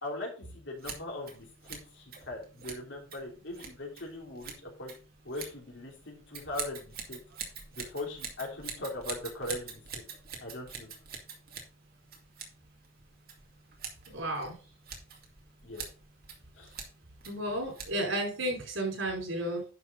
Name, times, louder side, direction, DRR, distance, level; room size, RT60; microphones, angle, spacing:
voice 1, 0.0-4.9 5.2-7.2 7.7-9.8 10.4-10.9 15.6-15.8 16.6-16.7, left 2 dB, 65° left, -1 dB, 3.3 m, -40 dB
Scissors, 0.8-18.2, right 6 dB, 50° right, 2.3 m, -45 dB
voice 2, 14.1-14.5 17.3-19.6, right 1 dB, 85° right, 0 dB, 4.7 m, -32 dB
11.0 x 5.9 x 4.0 m, 0.37 s
head